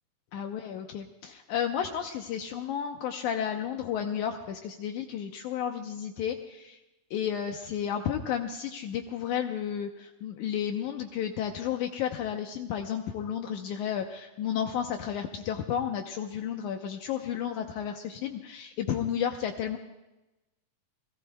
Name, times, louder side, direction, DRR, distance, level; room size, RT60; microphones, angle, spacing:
voice 1, 0.3-6.8 7.1-19.8, left 9 dB, 75° left, 4 dB, 2.2 m, -32 dB
28.5 x 18.5 x 2.3 m, 1.0 s
omnidirectional pair, 3.8 m